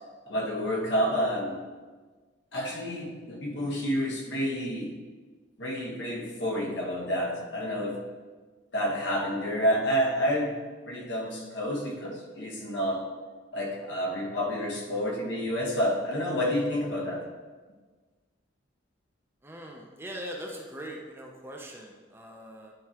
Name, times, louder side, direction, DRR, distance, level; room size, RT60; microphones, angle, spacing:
voice 1, 0.3-1.5 2.5-4.9 5.6-8.0 8.7-10.5 10.8-13.1 13.5-17.2, equal, 70° left, -2 dB, 1.3 m, -29 dB
voice 2, 19.4-22.7, equal, 10° right, 0 dB, 0.6 m, -41 dB
9.5 x 4.5 x 2.9 m, 1.4 s
head